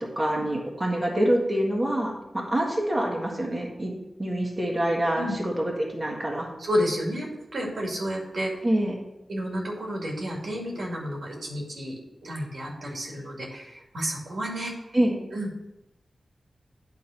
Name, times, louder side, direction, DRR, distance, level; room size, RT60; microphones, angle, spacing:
voice 1, 0.1-3.9 4.2-6.5 8.6-8.9 14.9-15.2, right 1 dB, 25° right, -2 dB, 1.7 m, -26 dB
voice 2, 6.6-8.5 9.3-14.7 15.3-15.7, equal, 80° right, -2 dB, 2.3 m, -31 dB
9.4 x 3.8 x 5.8 m, 0.95 s
wide cardioid pair, 80°, 0 cm